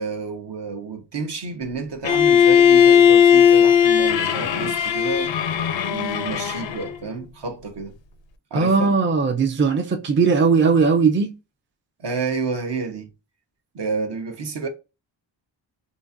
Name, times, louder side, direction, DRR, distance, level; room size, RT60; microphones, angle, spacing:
voice 1, 0.0-5.3 5.9-8.0 8.5-8.9 12.0-13.1 13.7-14.7, right 4 dB, 60° right, 0.8 m, -30 dB
Bowed string instrument, 2.0-7.0, left 8 dB, 70° left, 0.5 m, -17 dB
voice 2, 8.5-11.3, right 5 dB, 25° right, 0.4 m, -18 dB
3.8 x 2.4 x 2.6 m
wide cardioid pair, 65°, 48 cm